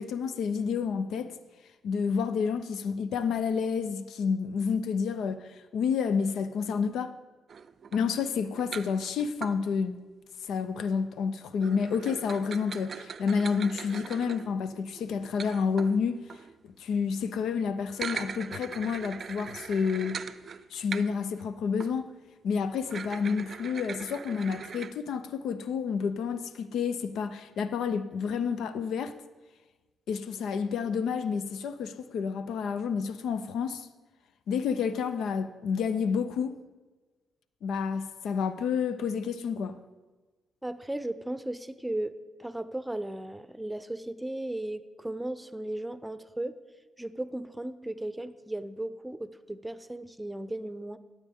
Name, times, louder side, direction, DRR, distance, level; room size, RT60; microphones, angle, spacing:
voice 1, 0.0-1.3 1.8-7.2 7.9-10.0 10.5-16.2 16.6-20.2 20.7-22.1 22.4-29.1 30.1-33.9 34.5-36.6 37.6-39.8, left 6 dB, 75° left, 0.4 m, -29 dB
sound 1, 7.5-9.6 11.6-16.5 17.8-21.4 21.8-22.0 22.8-24.9, right 6 dB, 55° right, 0.4 m, -41 dB
voice 2, 40.6-42.1 42.4-46.6 47.0-51.0, right 1 dB, 10° right, 0.7 m, -36 dB
14.0 x 8.3 x 3.6 m
hypercardioid pair, 45°, 0 cm